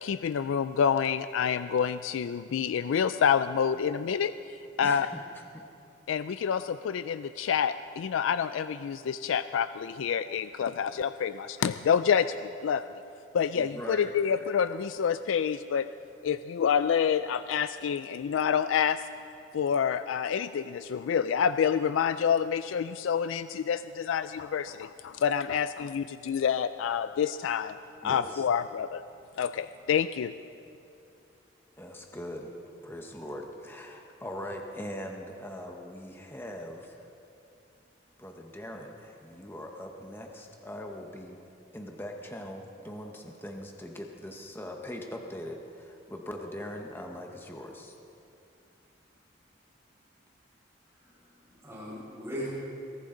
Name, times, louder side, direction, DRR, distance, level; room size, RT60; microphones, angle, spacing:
voice 1, 0.0-5.1 6.1-12.8 13.3-15.9 16.2-19.1 19.5-27.8 28.0-29.0 29.4-30.3, left 7 dB, 85° left, 12 dB, 0.3 m, -28 dB
voice 2, 4.8-5.6 13.5-14.2 28.0-28.4 31.8-32.5 32.8-37.1 38.2-41.4 41.7-47.9, left 1 dB, 10° left, 2 dB, 1.0 m, -41 dB
voice 3, 51.0-52.5, equal, 15° right, -6 dB, 4.9 m, -40 dB
22.5 x 14.5 x 3.9 m, 2.7 s
head